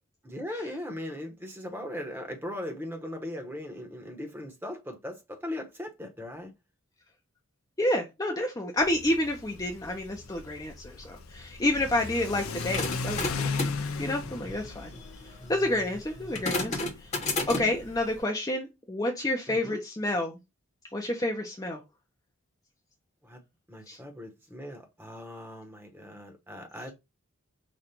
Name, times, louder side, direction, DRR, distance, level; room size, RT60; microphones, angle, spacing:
voice 1, 0.2-6.5 19.5-19.8 23.2-23.4 23.7-26.9, left 1 dB, 10° right, 1.0 m, -39 dB
voice 2, 7.8-13.5 14.0-14.9 15.5-16.9 17.5-20.4 20.9-21.8 23.9-24.0, left 1 dB, 15° left, 0.6 m, -29 dB
Car / Accelerating revving vroom, 8.8-18.2, left 4 dB, 80° left, 0.6 m, -37 dB
sound 1, 12.4-17.9, left 3 dB, 30° left, 1.0 m, -34 dB
5.1 x 2.4 x 4.2 m
head